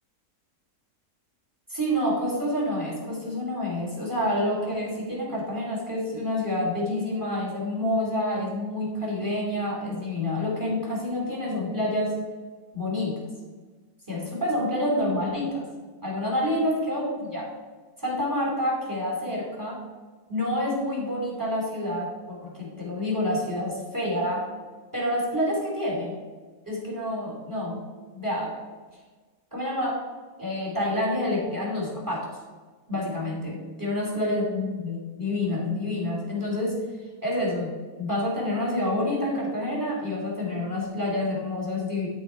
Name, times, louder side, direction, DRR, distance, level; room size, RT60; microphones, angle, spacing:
voice 1, 1.7-12.1 12.7-13.2 14.1-15.6 16.0-17.4 18.0-19.8 20.3-24.4 24.9-26.2 26.7-27.8 28.1-28.5 29.5-30.0 30.4-32.2 32.9-36.8 37.2-42.1, left 1 dB, 10° right, -4 dB, 2.7 m, -28 dB
12.5 x 4.2 x 4.4 m, 1.4 s
omnidirectional pair, 1.7 m